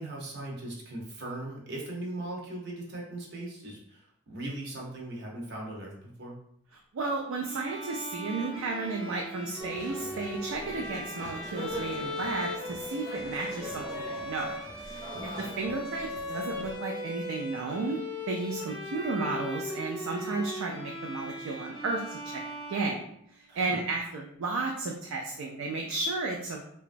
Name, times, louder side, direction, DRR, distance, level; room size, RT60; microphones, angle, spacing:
voice 1, 0.0-6.4 15.1-15.4 23.5-23.8, right 1 dB, 55° right, -2 dB, 0.7 m, -39 dB
voice 2, 6.9-15.1 15.4-18.0 18.3-22.4 22.7-23.0 23.3-26.6, right 3 dB, 90° right, 0 dB, 0.4 m, -33 dB
Bowed string instrument, 7.4-23.4, left 1 dB, 25° left, 0.5 m, -39 dB
sound 1, 9.6-16.8, right 1 dB, 15° right, 0.6 m, -43 dB
2.9 x 2.3 x 2.5 m, 0.69 s
head